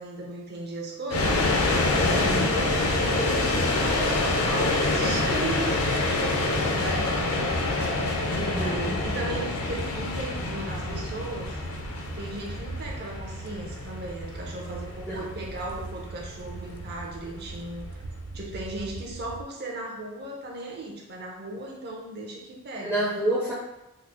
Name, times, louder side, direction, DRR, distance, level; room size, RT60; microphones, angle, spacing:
voice 1, 0.0-1.4 1.9-4.2 4.4-11.6 12.1-18.0 18.3-23.0, right 2 dB, 50° right, -2 dB, 0.7 m, -36 dB
sound 1, 1.1-18.1, left 2 dB, 85° left, 0.5 m, -27 dB
sound 2, 1.8-19.4, right 3 dB, 85° right, 0.4 m, -40 dB
voice 2, 2.1-2.6 8.4-9.0 15.1-15.3 22.8-23.5, right 1 dB, 5° right, -6 dB, 0.4 m, -28 dB
3.7 x 2.0 x 2.9 m, 0.94 s
head